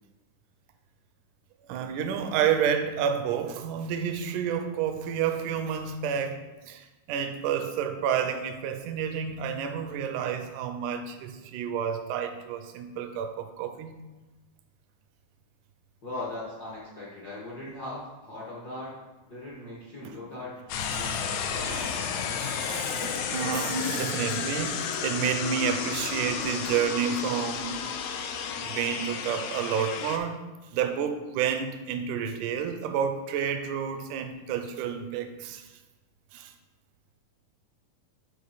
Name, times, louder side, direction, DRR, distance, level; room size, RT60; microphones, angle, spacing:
voice 1, 1.7-6.4 6.7-14.0 21.6-21.9 22.4-27.8 28.6-30.4 30.7-35.6 36.3-36.5, right 7 dB, 80° right, 8 dB, 2.0 m, -30 dB
voice 2, 16.0-18.9 19.2-20.5 20.9-22.4 23.9-24.2 27.4-27.5 27.8-28.1, left 2 dB, 65° left, -7 dB, 0.9 m, -40 dB
sound 1, 20.7-30.2, left 7 dB, 80° left, 1.6 m, -32 dB
10.5 x 3.9 x 4.0 m, 1.2 s
omnidirectional pair, 3.8 m